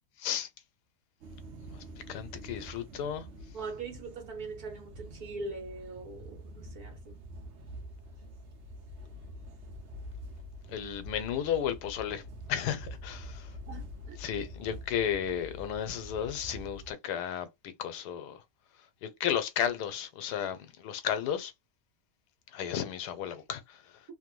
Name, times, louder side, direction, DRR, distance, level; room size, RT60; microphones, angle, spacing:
voice 1, 0.2-0.5 1.7-3.3 10.7-12.2 12.5-13.6 14.2-17.5 17.8-18.4 19.0-21.5 22.5-23.9, left 9 dB, 85° left, 1.2 m, -33 dB
sound 1, 1.2-16.9, equal, 55° right, 0.9 m, -46 dB
voice 2, 3.5-7.2 13.7-14.2, right 3 dB, 70° right, 1.4 m, -41 dB
3.1 x 2.1 x 3.0 m
omnidirectional pair, 1.7 m